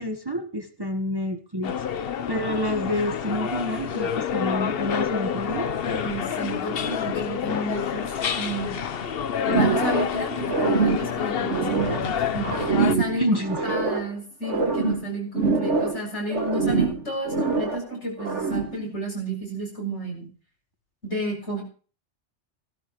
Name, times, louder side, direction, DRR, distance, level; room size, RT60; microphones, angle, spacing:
voice 1, 0.0-5.7 13.1-13.8, left 1 dB, 20° right, 5 dB, 1.3 m, -28 dB
sound 1, 1.6-12.9, left 7 dB, 60° left, 1.0 m, -28 dB
voice 2, 5.8-8.1 8.4-8.7 9.5-13.3 13.7-20.3 21.0-21.6, right 2 dB, 75° left, 1 dB, 7.6 m, -31 dB
sound 2, 9.5-10.2 10.4-12.1 12.4-14.1 14.4-16.0 16.3-17.9 18.2-18.8, right 4 dB, 80° right, 2.4 m, -25 dB
18.5 x 15.0 x 3.1 m, 0.39 s
omnidirectional pair, 1.2 m